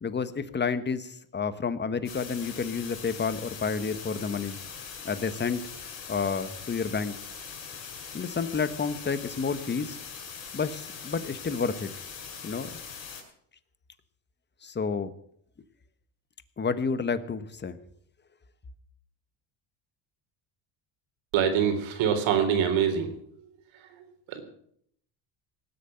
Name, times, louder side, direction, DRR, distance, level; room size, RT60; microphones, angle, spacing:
voice 1, 0.0-4.6 5.0-5.7 6.1-7.1 8.1-10.0 10.5-11.9 12.4-12.8 14.6-15.1 16.6-17.8, left 5 dB, 25° left, 13 dB, 1.2 m, -30 dB
sound 1, 2.0-13.2, left 6 dB, 80° left, 6.3 m, -41 dB
voice 2, 21.3-23.1 24.3-24.4, right 8 dB, 85° right, 6 dB, 3.8 m, -24 dB
19.0 x 8.5 x 7.8 m, 0.66 s
cardioid pair, 115°, 45 cm